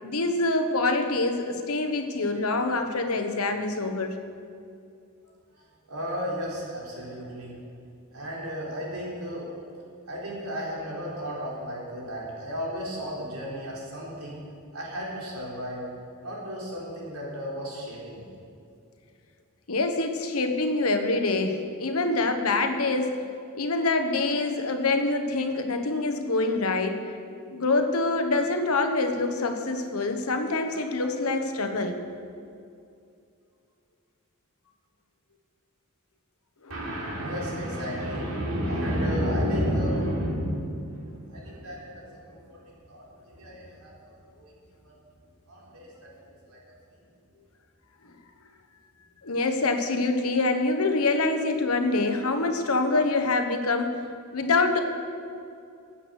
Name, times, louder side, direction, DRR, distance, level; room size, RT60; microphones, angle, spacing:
voice 1, 0.0-4.2 19.7-23.2 23.6-27.0 27.5-32.0 36.6-36.7 49.2-54.0 54.3-54.8, left 3 dB, 80° left, 6 dB, 1.2 m, -25 dB
voice 2, 5.9-7.5 8.1-9.6 10.1-14.4 14.7-15.8 16.2-18.3 36.7-42.6 42.9-44.5 44.8-44.9 45.5-46.6, equal, 85° right, -5 dB, 4.0 m, -32 dB
14.5 x 8.7 x 6.5 m, 2.5 s
head